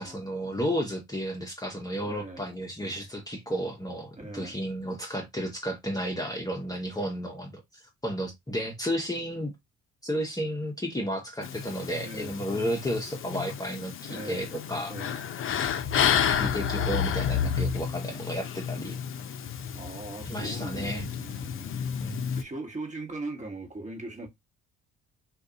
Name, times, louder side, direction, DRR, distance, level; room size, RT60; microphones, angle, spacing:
voice 1, 0.0-7.6 8.0-9.5 10.0-15.2 16.0-19.0 20.3-21.1 22.0-22.2, equal, 10° left, 0.8 m, -32 dB
voice 2, 2.0-2.5 4.2-4.6 12.0-12.4 14.1-14.5 14.9-15.2 19.7-21.9 22.3-24.3, right 2 dB, 25° right, 1.2 m, -40 dB
sound 1, 11.4-22.4, left 8 dB, 45° left, 0.5 m, -30 dB
2.5 x 2.4 x 3.7 m
supercardioid pair, 70°, 30 cm